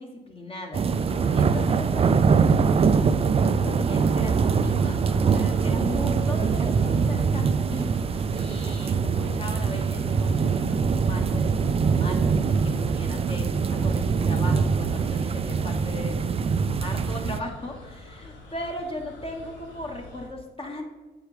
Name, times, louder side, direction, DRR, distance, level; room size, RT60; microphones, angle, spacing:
voice 1, 0.0-7.9 8.3-20.8, left 1 dB, 30° left, 2 dB, 1.3 m, -37 dB
sound 1, 0.7-17.4, right 5 dB, 30° right, 0.4 m, -23 dB
sound 2, 0.9-20.3, left 2 dB, 70° left, 2.0 m, -44 dB
7.5 x 4.7 x 4.9 m, 1.2 s
cardioid pair, 90°, 20 cm